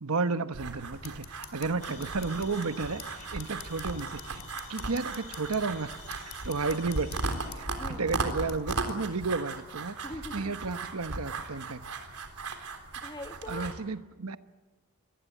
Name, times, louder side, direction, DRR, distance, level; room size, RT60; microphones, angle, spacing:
voice 1, 0.0-4.4 4.7-5.9 6.2-10.0 10.3-11.9 13.5-14.4, right 4 dB, 75° right, 11 dB, 1.1 m, -33 dB
sound 1, 0.5-13.7, right 3 dB, 90° right, 3.7 m, -37 dB
sound 2, 0.9-9.0, left 7 dB, 45° left, 3.2 m, -49 dB
sound 3, 1.8-7.5, left 4 dB, 75° left, 6.0 m, -49 dB
voice 2, 7.7-8.1 10.0-10.5 13.0-13.7, left 1 dB, 20° left, 7 dB, 1.6 m, -41 dB
24.5 x 19.5 x 9.3 m, 1.2 s
head